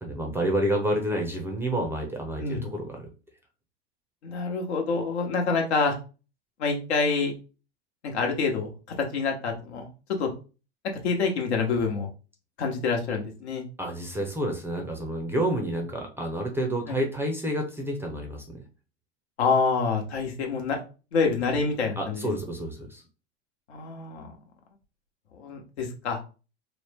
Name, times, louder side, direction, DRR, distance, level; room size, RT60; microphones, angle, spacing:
voice 1, 0.0-3.1 13.8-18.6 22.0-23.0, right 1 dB, 5° right, 1 dB, 0.6 m, -29 dB
voice 2, 4.2-6.0 6.6-7.3 8.0-8.7 9.0-10.3 11.0-12.1 12.6-13.6 16.9-17.0 19.4-20.8 21.1-22.3 23.7-24.3 25.3-26.3, left 4 dB, 70° left, 2 dB, 1.1 m, -27 dB
3.1 x 2.1 x 3.3 m, 0.33 s
hypercardioid pair, 95°, 34 cm